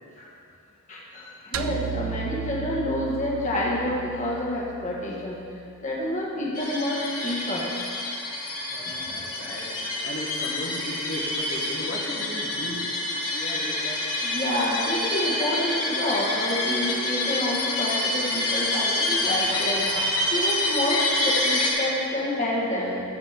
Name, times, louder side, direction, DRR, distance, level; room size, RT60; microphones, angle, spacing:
voice 1, 0.9-5.4 5.8-7.6 8.8-9.0 14.2-23.0, left 1 dB, 35° left, -4 dB, 1.5 m, -28 dB
sound 1, 1.5-5.9, right 8 dB, 65° right, 0.4 m, -35 dB
sound 2, 6.6-21.7, left 2 dB, 85° left, 2.4 m, -27 dB
voice 2, 8.7-12.9 13.3-14.1, left 1 dB, 50° left, -5 dB, 1.4 m, -36 dB
12.5 x 4.3 x 7.7 m, 2.5 s
head